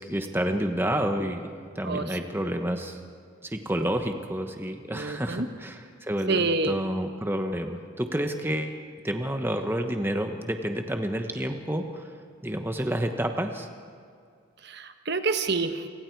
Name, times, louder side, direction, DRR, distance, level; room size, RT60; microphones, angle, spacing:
voice 1, 0.1-3.0 3.4-12.1 12.4-13.7, right 1 dB, 10° right, 5 dB, 1.1 m, -29 dB
voice 2, 4.9-5.5 6.3-6.8 14.6-15.9, right 3 dB, 50° right, 8 dB, 1.1 m, -27 dB
29.0 x 24.5 x 4.7 m, 2.2 s
head